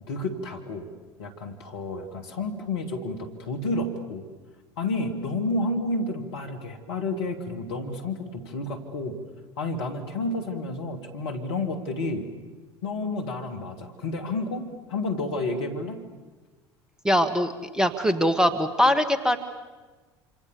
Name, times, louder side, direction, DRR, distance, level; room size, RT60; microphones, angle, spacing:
voice 1, 0.1-0.9 1.2-4.2 4.8-9.2 9.6-12.3 12.8-14.6 14.9-16.0, left 2 dB, 70° left, 4 dB, 2.9 m, -30 dB
voice 2, 17.0-19.4, equal, 5° right, 10 dB, 2.0 m, -22 dB
27.0 x 27.0 x 7.1 m, 1.3 s
figure-of-eight pair, 65°, 14 cm